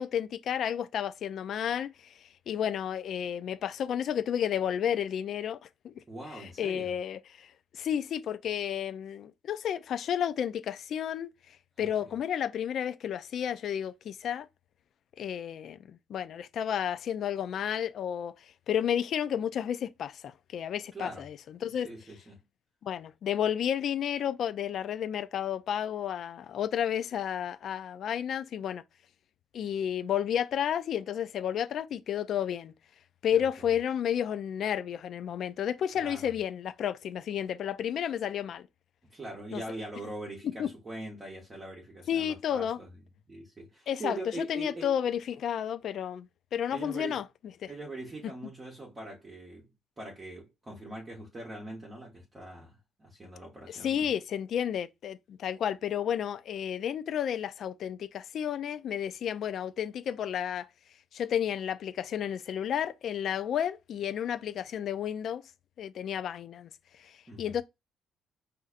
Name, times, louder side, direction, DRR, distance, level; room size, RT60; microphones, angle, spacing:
voice 1, 0.0-1.9 2.5-5.6 5.8-5.9 6.4-7.5 7.7-11.3 11.8-14.5 15.2-18.3 18.7-21.9 22.8-28.8 29.5-32.7 33.2-38.7 39.5-39.6 40.4-40.7 42.1-42.8 43.9-44.2 44.5-47.2 47.6-47.7 53.7-60.7 61.1-65.4 65.8-66.7 67.0-67.1 67.4-67.6, left 9 dB, 45° left, 0.3 m, -31 dB
voice 2, 6.1-6.9 11.8-12.1 20.9-21.3 21.7-22.4 33.3-33.8 35.9-36.3 39.1-43.0 43.3-45.0 46.7-47.2 47.7-49.7 50.0-54.1 67.3-67.6, right 2 dB, 20° right, 1.0 m, -42 dB
5.5 x 2.6 x 2.4 m
cardioid pair, 170°, 0 cm